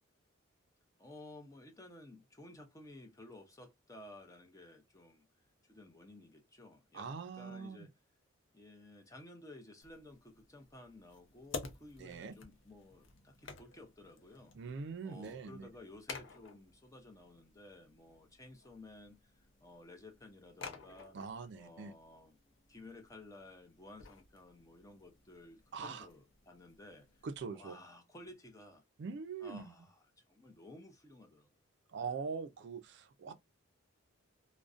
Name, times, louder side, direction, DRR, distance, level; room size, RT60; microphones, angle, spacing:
voice 1, 1.0-5.2 5.6-7.1 7.3-7.9 8.5-14.5 15.0-21.2 21.5-22.4 22.7-27.3 27.5-28.8 29.4-30.0 30.3-31.5 32.0-32.1, left 2 dB, 15° left, 0.5 m, -55 dB
voice 2, 6.9-7.9 12.0-12.4 14.5-15.7 21.1-21.9 25.7-26.1 27.2-27.8 29.0-29.7 31.9-33.3, right 5 dB, 55° right, 0.3 m, -43 dB
sound 1, 9.8-27.4, left 4 dB, 60° left, 0.6 m, -53 dB
2.5 x 2.1 x 2.4 m
head